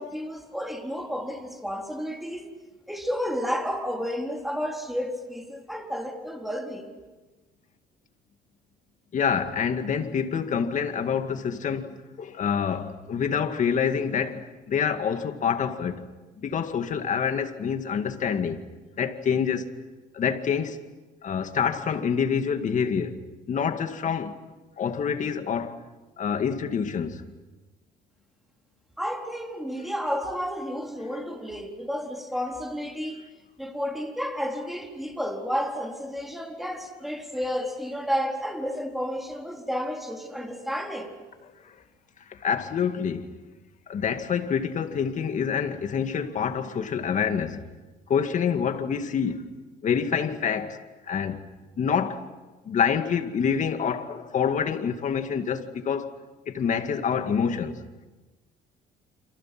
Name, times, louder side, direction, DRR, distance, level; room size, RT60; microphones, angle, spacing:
voice 1, 0.0-2.5 2.9-6.9 29.0-33.2 33.6-41.1, equal, ahead, 4.1 m, -31 dB
voice 2, 9.1-16.1 16.4-18.6 19.0-19.7 20.1-20.8 21.2-23.2 23.5-24.3 24.8-25.8 26.2-27.2 41.4-41.8 42.3-43.3 43.9-47.6 48.1-49.5 49.8-50.8 51.1-51.4 51.8-52.2 52.7-56.1 56.5-57.8, left 7 dB, 45° left, 2.2 m, -27 dB
29.0 x 28.0 x 6.1 m
cardioid pair, 110°, 17 cm